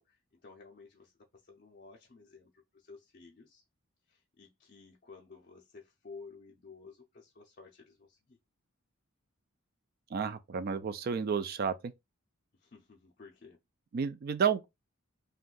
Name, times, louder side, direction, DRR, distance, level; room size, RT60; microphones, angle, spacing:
voice 1, 0.0-3.6 4.1-8.4 12.5-13.6, left 4 dB, 40° left, 0.5 m, -54 dB
voice 2, 10.1-11.9 13.9-14.7, right 6 dB, 45° right, 0.3 m, -31 dB
2.6 x 2.3 x 3.7 m
head